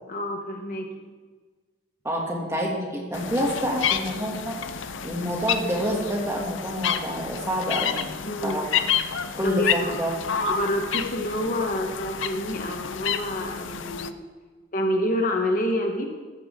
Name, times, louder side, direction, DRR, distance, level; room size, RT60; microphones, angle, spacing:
voice 1, 0.1-1.1 8.2-8.7 9.4-9.9 10.4-14.2 14.7-16.1, equal, 40° left, 2 dB, 1.2 m, -28 dB
voice 2, 2.0-4.6 5.0-8.1 8.4-8.7 9.3-10.1, equal, 15° right, -2 dB, 2.3 m, -27 dB
sound 1, 3.1-14.1, left 8 dB, 65° left, 0.6 m, -30 dB
15.5 x 13.5 x 3.7 m, 1.4 s
head